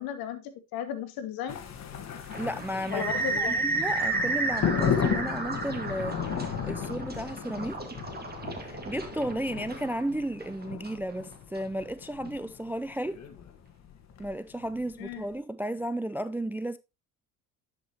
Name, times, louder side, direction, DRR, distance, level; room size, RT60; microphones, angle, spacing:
voice 1, 0.0-1.6 2.9-3.6 15.0-15.2, left 9 dB, 70° left, 1.4 m, -35 dB
sound 1, 1.5-15.2, left 7 dB, 45° left, 1.5 m, -35 dB
voice 2, 2.3-7.8 8.6-13.2 14.2-16.8, right 1 dB, 5° right, 0.3 m, -34 dB
sound 2, 2.3-11.6, right 3 dB, 25° right, 2.0 m, -33 dB
10.0 x 5.2 x 2.9 m
hypercardioid pair, 70°, 38 cm